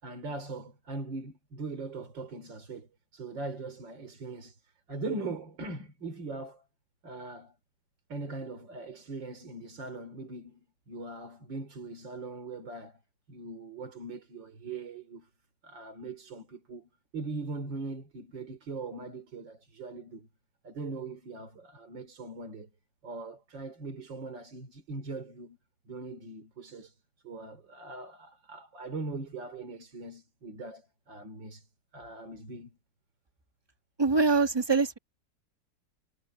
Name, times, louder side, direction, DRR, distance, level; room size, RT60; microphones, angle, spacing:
voice 1, 0.0-4.6 4.9-6.6 7.0-7.5 8.1-10.6 10.9-13.0 13.3-15.3 15.6-20.3 20.6-22.7 23.0-25.6 25.9-27.0 27.2-31.7 31.9-32.8, right 3 dB, 85° right, 4.2 m, -40 dB
voice 2, 34.0-35.0, right 4 dB, 15° right, 1.1 m, -24 dB
omnidirectional pair, 2.0 m